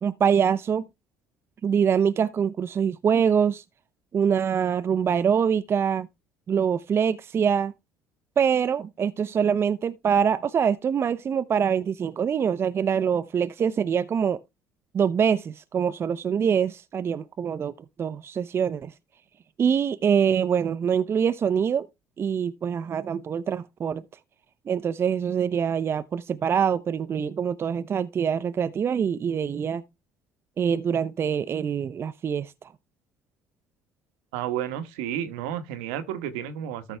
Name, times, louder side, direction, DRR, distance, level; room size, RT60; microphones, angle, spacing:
voice 1, 0.0-0.8 1.6-3.6 4.1-6.1 6.5-7.7 8.4-14.4 14.9-18.9 19.6-21.9 22.2-24.0 24.7-29.8 30.6-32.7, right 7 dB, 40° right, 0.6 m, -24 dB
voice 2, 34.3-37.0, right 10 dB, 80° right, 1.3 m, -31 dB
13.5 x 6.0 x 3.3 m
hypercardioid pair, 65°, 6 cm